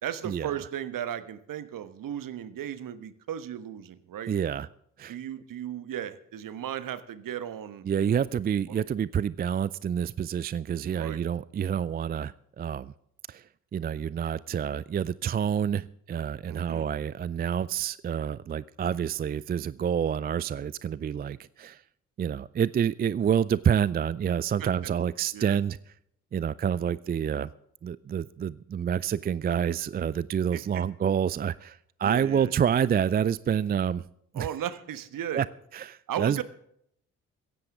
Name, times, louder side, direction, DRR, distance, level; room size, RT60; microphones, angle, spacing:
voice 1, 0.0-4.3 5.1-7.8 8.7-8.8 10.9-11.2 16.4-16.8 24.6-24.9 25.3-25.6 30.5-30.8 32.0-32.5 34.3-35.4 36.1-36.4, right 10 dB, 50° right, 13 dB, 1.3 m, -36 dB
voice 2, 4.3-4.7 5.0-5.2 7.8-12.9 13.3-13.4 13.7-21.8 22.2-25.8 26.3-27.5 27.8-34.0 34.3-34.5 35.3-35.5 35.7-36.4, right 8 dB, 25° right, 20 dB, 0.4 m, -28 dB
16.5 x 14.5 x 3.6 m, 0.70 s
figure-of-eight pair, 40°, 41 cm